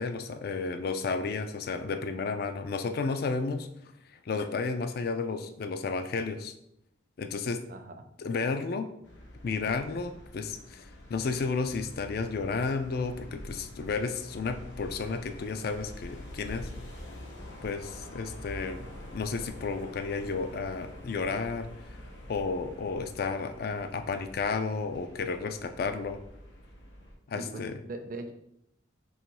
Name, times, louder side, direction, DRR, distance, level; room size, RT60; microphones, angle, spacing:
voice 1, 0.0-3.7 4.3-6.5 7.2-7.6 8.2-8.9 9.4-16.7 17.6-18.9 19.1-21.7 22.3-26.2 27.3-27.8, left 4 dB, 55° left, 9 dB, 0.4 m, -32 dB
voice 2, 7.7-8.1 27.3-28.3, right 2 dB, 45° right, 6 dB, 0.5 m, -40 dB
sound 1, 9.0-27.1, left 1 dB, 85° left, 1.1 m, -46 dB
4.0 x 2.9 x 4.6 m, 0.77 s
head